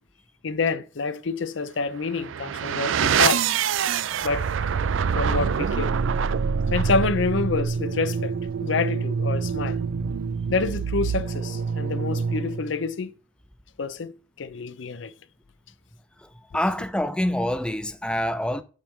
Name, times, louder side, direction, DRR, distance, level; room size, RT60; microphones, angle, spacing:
voice 1, 0.4-3.4 4.2-4.5 5.2-6.0 6.7-8.4 8.6-9.8 10.5-13.1 13.8-15.1, left 4 dB, 75° left, 0.6 m, -27 dB
sound 1, 2.0-12.8, right 6 dB, 85° right, 0.4 m, -26 dB
sound 2, 5.9-12.4, right 1 dB, 45° right, 1.0 m, -47 dB
voice 2, 16.2-18.6, left 1 dB, 5° left, 0.5 m, -26 dB
7.3 x 6.4 x 3.6 m
head